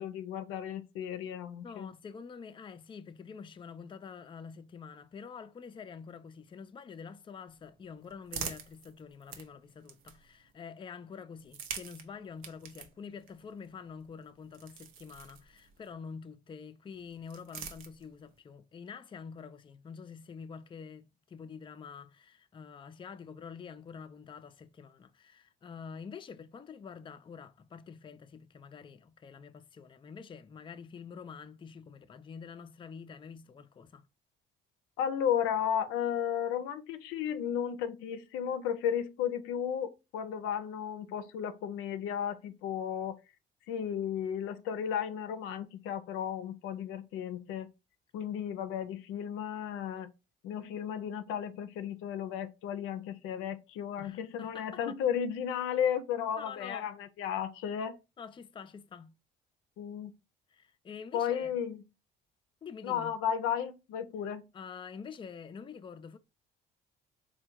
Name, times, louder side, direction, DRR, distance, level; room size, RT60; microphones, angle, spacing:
voice 1, 0.0-1.9 35.0-43.2 43.7-47.7 48.1-50.1 50.4-58.0 59.8-60.1 61.1-61.8 62.8-64.4, left 9 dB, 85° left, 0.5 m, -34 dB
voice 2, 1.6-34.0 54.0-54.8 56.4-56.9 58.2-59.1 60.5-61.5 62.6-63.1 64.5-66.2, left 6 dB, 25° left, 0.4 m, -47 dB
sound 1, 7.5-10.5 11.3-15.9 16.9-18.4, right 7 dB, 85° right, 0.6 m, -46 dB
3.4 x 2.2 x 4.3 m
supercardioid pair, 75°, 21 cm